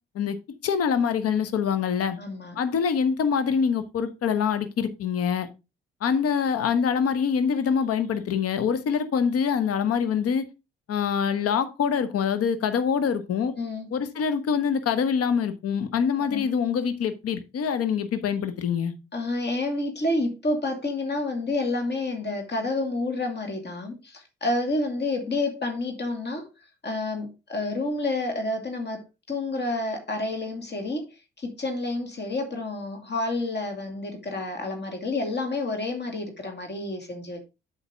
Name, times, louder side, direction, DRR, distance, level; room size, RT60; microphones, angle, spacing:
voice 1, 0.6-2.2 2.6-5.5 6.0-10.4 10.9-13.5 13.9-18.9, left 7 dB, 50° left, 1.1 m, -25 dB
voice 2, 2.2-2.6 13.6-13.9 16.2-16.4 19.1-26.5 26.8-29.0 29.3-31.1 31.4-37.4, left 2 dB, 35° left, 2.4 m, -29 dB
8.0 x 5.8 x 3.5 m
figure-of-eight pair, 45°, 30 cm